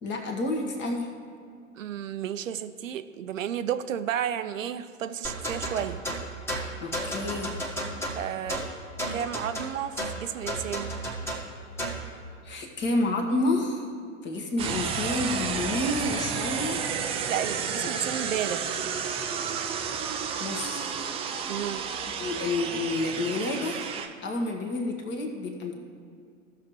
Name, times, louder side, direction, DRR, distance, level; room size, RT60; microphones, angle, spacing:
voice 1, 0.0-1.1 6.8-7.7 12.4-13.9 14.2-16.8 17.9-18.1 20.4-21.0 22.2-23.9 24.2-25.8, left 2 dB, 25° left, 2 dB, 1.5 m, -29 dB
voice 2, 1.8-6.0 8.1-8.6 9.1-11.0 17.3-18.8 21.5-21.9, right 9 dB, 75° right, 11 dB, 0.6 m, -32 dB
sound 1, 5.2-12.1, right 1 dB, 5° left, 1.4 m, -33 dB
sound 2, 14.6-24.1, right 7 dB, 15° right, 0.4 m, -31 dB
15.5 x 6.6 x 3.2 m, 2.2 s
figure-of-eight pair, 100°, 39 cm